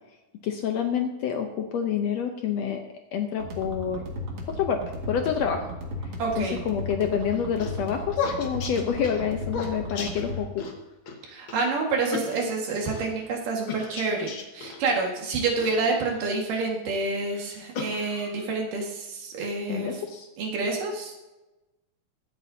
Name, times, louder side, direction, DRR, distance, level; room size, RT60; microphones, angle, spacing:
voice 1, 0.4-2.8 3.1-4.0 4.5-5.7 6.4-10.6 19.7-20.3, left 8 dB, 80° left, 4 dB, 1.5 m, -28 dB
sound 1, 3.4-10.4, left 1 dB, 45° right, 2.5 m, -35 dB
voice 2, 6.2-6.6 11.3-19.9 20.4-21.1, right 3 dB, 70° right, 0 dB, 3.3 m, -28 dB
sound 2, 7.2-10.7 11.1-11.2 11.5-11.7 12.1-13.1 13.7-14.8 15.6-16.7 17.3-18.5, left 5 dB, 55° left, 1.5 m, -35 dB
23.0 x 8.3 x 2.7 m, 1.1 s
omnidirectional pair, 4.0 m